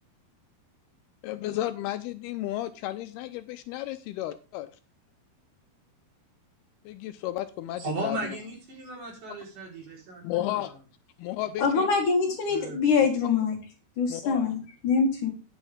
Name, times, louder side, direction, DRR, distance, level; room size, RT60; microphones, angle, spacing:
voice 1, 1.2-4.7 6.9-8.4 10.2-10.7 11.2-11.9 14.1-14.4, left 14 dB, 80° left, 11 dB, 2.5 m, -33 dB
voice 2, 7.8-10.6 12.5-12.8, right 2 dB, 50° right, -2 dB, 5.5 m, -36 dB
voice 3, 11.6-13.6 14.0-15.3, left 5 dB, 55° left, 2 dB, 3.2 m, -24 dB
10.0 x 10.0 x 3.5 m, 0.32 s
omnidirectional pair, 4.7 m